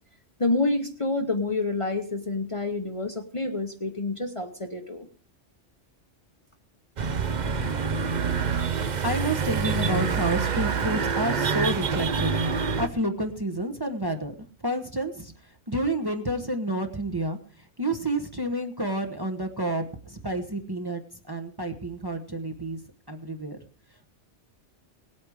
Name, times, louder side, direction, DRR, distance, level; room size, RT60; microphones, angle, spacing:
voice 1, 0.4-5.1, left 2 dB, 30° left, 5 dB, 0.9 m, -28 dB
sound 1, 7.0-12.9, right 5 dB, 45° right, 0.8 m, -26 dB
voice 2, 8.2-14.3 14.6-15.3 15.7-21.0 21.3-22.8 23.1-23.6, right 1 dB, 20° right, 4 dB, 1.0 m, -30 dB
18.0 x 8.5 x 4.8 m, 0.40 s
omnidirectional pair, 1.2 m